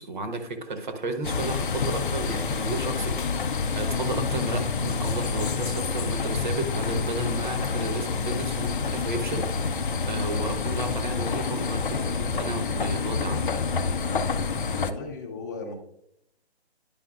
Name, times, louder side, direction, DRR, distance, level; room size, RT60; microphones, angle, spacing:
voice 1, 0.0-13.5, right 2 dB, 45° right, 6 dB, 1.1 m, -33 dB
sound 1, 1.2-14.9, left 5 dB, 50° left, 0.5 m, -28 dB
voice 2, 14.7-15.7, left 3 dB, 15° left, -1 dB, 0.7 m, -36 dB
10.5 x 5.6 x 2.4 m, 0.75 s
hypercardioid pair, 160°, 33 cm